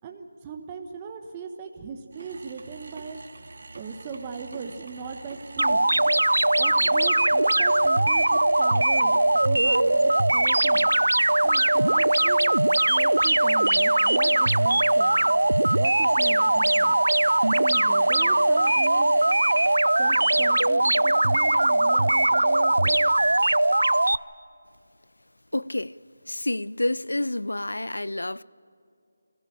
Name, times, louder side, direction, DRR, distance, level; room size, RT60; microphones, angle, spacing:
voice 1, 0.0-3.4 3.7-6.0 6.6-10.9 11.4-12.5 12.9-15.3 15.7-17.0 17.5-19.1 20.0-23.0, right 5 dB, 20° right, 1.2 m, -38 dB
sound 1, 2.1-19.8, right 3 dB, 60° right, 1.5 m, -45 dB
sound 2, 5.6-24.2, right 2 dB, 85° right, 0.4 m, -20 dB
voice 2, 25.5-25.9 26.3-28.4, left 1 dB, 90° left, 0.5 m, -28 dB
22.5 x 15.5 x 8.9 m
figure-of-eight pair, 160°, 0 cm